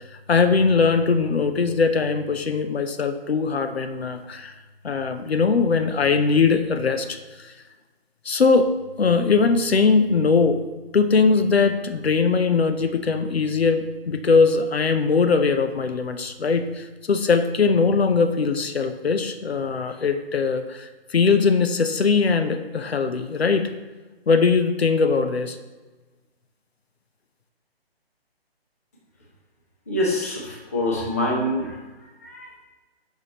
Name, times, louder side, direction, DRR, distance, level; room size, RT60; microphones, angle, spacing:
voice 1, 0.1-4.5 4.8-7.5 8.2-8.7 9.0-10.6 10.9-23.7 24.3-25.6, left 4 dB, 75° left, 7 dB, 0.7 m, -21 dB
voice 2, 29.9-31.8 32.2-32.5, left 1 dB, 15° left, -3 dB, 0.5 m, -25 dB
6.6 x 5.0 x 3.0 m, 1.2 s
figure-of-eight pair, 145°, 31 cm